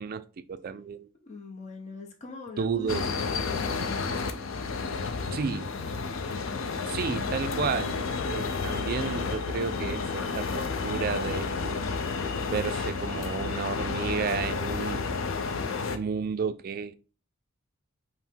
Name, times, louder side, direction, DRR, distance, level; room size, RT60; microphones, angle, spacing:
voice 1, 0.0-1.1 2.6-3.1 5.3-5.7 6.9-11.8 12.5-15.1 15.9-16.9, right 6 dB, 45° right, 0.3 m, -32 dB
voice 2, 1.1-4.3 6.6-7.0, left 4 dB, 35° left, 0.7 m, -44 dB
sound 1, 2.9-16.0, left 4 dB, 70° left, 0.5 m, -31 dB
5.5 x 2.1 x 4.4 m
head